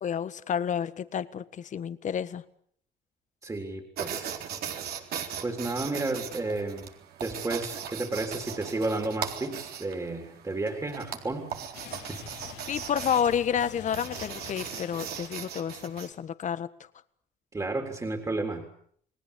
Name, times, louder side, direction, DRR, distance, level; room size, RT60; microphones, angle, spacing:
voice 1, 0.0-1.4 1.7-2.4 12.7-16.7, left 8 dB, 45° left, 14 dB, 1.6 m, -30 dB
voice 2, 3.4-4.4 5.4-6.9 7.2-11.5 11.9-12.3 17.5-18.7, right 2 dB, 20° right, 5 dB, 3.6 m, -32 dB
sound 1, 4.0-16.1, right 8 dB, 65° right, 4.0 m, -39 dB
sound 2, 11.7-15.9, left 10 dB, 80° left, 4.1 m, -46 dB
29.5 x 19.5 x 8.4 m, 0.63 s
cardioid pair, 110°, 17 cm